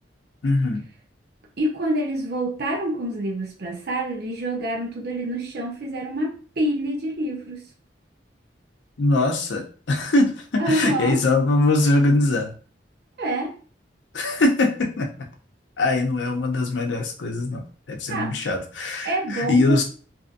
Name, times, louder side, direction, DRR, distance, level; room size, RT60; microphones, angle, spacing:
voice 1, 0.4-0.8 9.0-12.5 14.1-15.1 15.8-19.8, left 2 dB, 75° left, 3 dB, 0.6 m, -22 dB
voice 2, 1.6-7.7 10.6-11.2 13.2-13.5 18.1-18.3 19.0-19.8, right 1 dB, 60° right, 2 dB, 0.7 m, -26 dB
2.7 x 2.5 x 2.5 m, 0.40 s
head